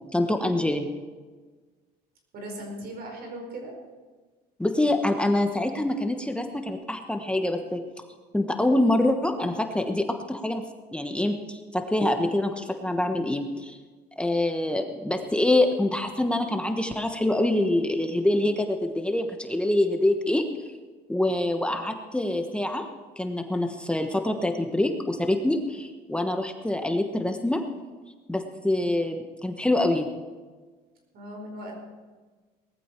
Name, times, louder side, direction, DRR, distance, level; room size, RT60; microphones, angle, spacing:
voice 1, 0.1-0.8 4.6-7.8 8.3-10.6 10.9-13.8 14.2-20.4 21.1-22.8 23.2-27.6 28.3-30.1, left 1 dB, 5° left, 5 dB, 1.1 m, -25 dB
voice 2, 2.3-3.7 31.1-31.8, right 1 dB, 65° right, 2 dB, 4.9 m, -38 dB
19.0 x 13.5 x 4.5 m, 1.4 s
cardioid pair, 110°, 17 cm